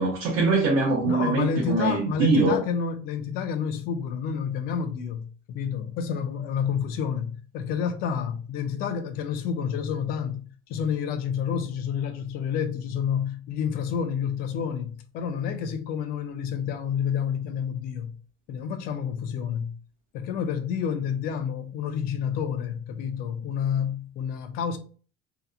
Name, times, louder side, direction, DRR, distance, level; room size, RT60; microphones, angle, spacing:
voice 1, 0.0-2.6, right 3 dB, 60° right, 0.7 m, -23 dB
voice 2, 1.1-10.4 10.7-18.1 18.5-19.7 20.1-24.8, left 7 dB, 50° left, 0.4 m, -29 dB
2.7 x 2.1 x 2.4 m
cardioid pair, 170°, 20 cm